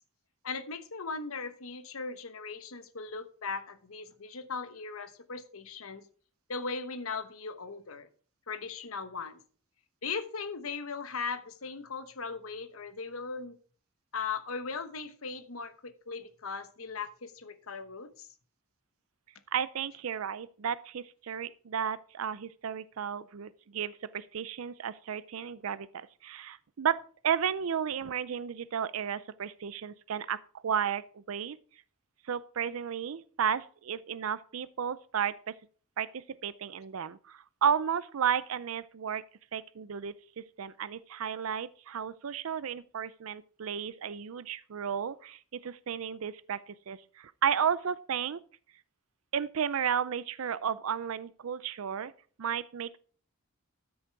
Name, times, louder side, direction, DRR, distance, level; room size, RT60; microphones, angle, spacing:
voice 1, 0.4-6.1 6.5-8.1 8.5-9.4 10.0-13.6 14.1-18.3, left 4 dB, 80° left, 1.1 m, -38 dB
voice 2, 19.5-27.0 27.2-30.4 30.6-31.6 32.2-35.5 36.0-39.2 39.5-40.1 40.6-48.4 49.3-52.1 52.4-53.0, right 8 dB, 80° right, 0.5 m, -33 dB
13.0 x 6.4 x 4.6 m
head